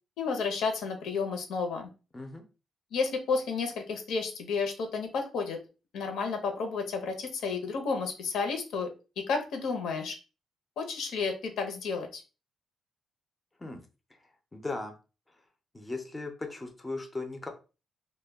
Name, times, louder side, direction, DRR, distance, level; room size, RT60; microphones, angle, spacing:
voice 1, 0.2-1.9 2.9-5.6 5.9-8.9 9.2-10.2 10.8-12.2, left 4 dB, 80° left, 4 dB, 0.6 m, -31 dB
voice 2, 2.1-2.4 13.6-13.8 14.1-14.2 14.5-15.0 15.7-17.5, left 3 dB, 15° left, 5 dB, 0.4 m, -37 dB
2.1 x 2.1 x 3.3 m, 0.32 s
cardioid pair, 145°, 0 cm